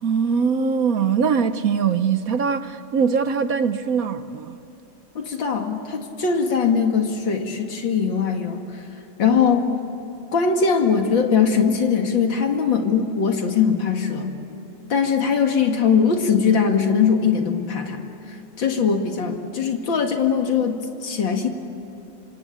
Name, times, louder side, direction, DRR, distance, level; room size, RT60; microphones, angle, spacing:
voice 1, 0.0-4.6, right 6 dB, 60° right, 1.1 m, -22 dB
voice 2, 5.1-8.8 9.2-9.7 10.3-14.3 14.9-18.0 18.3-21.5, left 6 dB, 90° left, 2.8 m, -21 dB
26.5 x 25.5 x 8.6 m
omnidirectional pair, 2.0 m